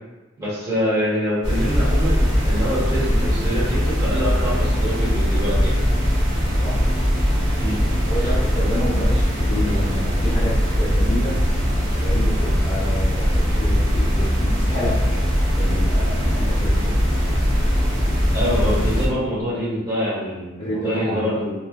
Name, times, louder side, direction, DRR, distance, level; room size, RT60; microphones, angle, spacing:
voice 1, 0.4-5.8 7.6-7.8 8.2-8.3 18.3-21.5, equal, 15° right, -10 dB, 1.1 m, -25 dB
sound 1, 1.4-19.1, equal, 80° right, 1.0 m, -20 dB
voice 2, 8.1-11.4 12.0-15.0 15.6-17.0 20.6-21.4, equal, 30° left, -10 dB, 0.8 m, -29 dB
3.1 x 2.3 x 2.4 m, 1.2 s
head